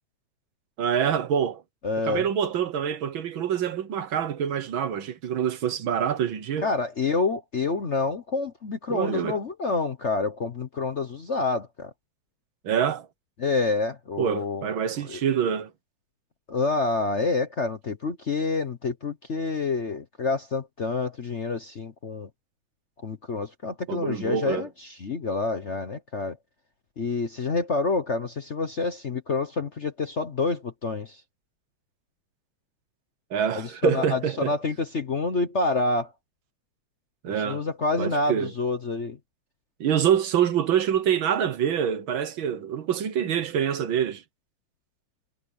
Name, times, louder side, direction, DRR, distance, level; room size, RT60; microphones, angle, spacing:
voice 1, 0.8-1.6 2.0-6.7 8.9-9.4 12.6-13.1 14.2-15.7 23.9-24.7 33.3-34.6 37.2-37.6 38.0-38.5 39.8-44.2, right 8 dB, 65° right, 1.9 m, -26 dB
voice 2, 1.8-2.3 6.6-11.9 13.4-14.7 15.1-15.2 16.5-22.3 23.0-26.4 27.0-31.2 33.5-36.1 37.4-39.2, left 3 dB, 45° left, 1.0 m, -28 dB
omnidirectional pair, 2.4 m